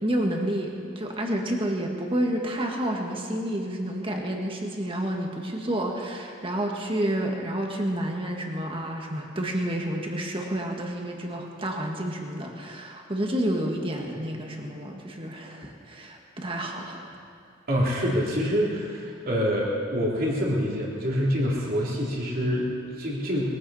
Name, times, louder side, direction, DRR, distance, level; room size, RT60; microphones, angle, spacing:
voice 1, 0.0-17.1, right 1 dB, 25° right, 1 dB, 1.8 m, -29 dB
voice 2, 17.7-23.5, equal, 45° right, -4 dB, 3.3 m, -26 dB
22.0 x 15.5 x 4.3 m, 2.3 s
head